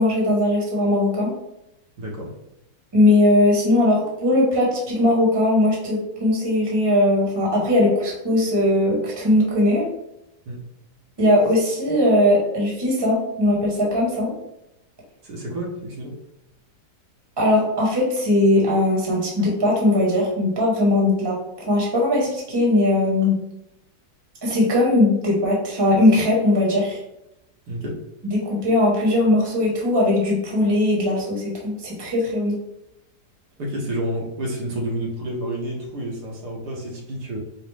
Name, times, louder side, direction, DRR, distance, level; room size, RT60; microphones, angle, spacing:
voice 1, 0.0-1.3 2.9-9.9 11.2-14.3 17.4-21.4 21.7-23.4 24.4-27.0 28.2-32.6, left 1 dB, 15° right, -3 dB, 1.0 m, -19 dB
voice 2, 2.0-2.3 10.5-10.6 15.2-16.1 27.7-28.0 33.6-37.4, right 1 dB, 70° right, -2 dB, 1.4 m, -29 dB
5.0 x 2.1 x 3.2 m, 0.86 s
omnidirectional pair, 1.9 m